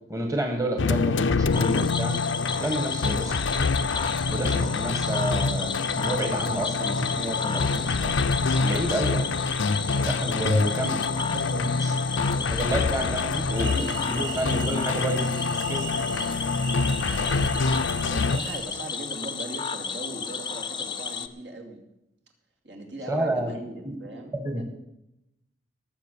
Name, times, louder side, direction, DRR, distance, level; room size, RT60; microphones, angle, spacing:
voice 1, 0.1-2.2 2.6-3.7 4.3-8.1 8.6-9.3 10.0-11.0 11.5-12.0 12.4-15.8 23.1-23.5 23.8-24.0 24.3-24.7, right 1 dB, 20° right, 3 dB, 1.5 m, -30 dB
sound 1, 0.8-18.4, left 4 dB, 85° left, 0.6 m, -26 dB
Cricket / Frog, 1.5-21.3, left 6 dB, 25° left, 0.6 m, -33 dB
voice 2, 10.0-10.7 12.8-13.1 17.0-17.7 18.0-21.8 22.6-24.7, right 2 dB, 65° right, 2 dB, 2.6 m, -40 dB
sound 2, 13.5-18.6, right 5 dB, 80° right, 2.4 m, -38 dB
19.0 x 7.1 x 6.8 m, 0.89 s
head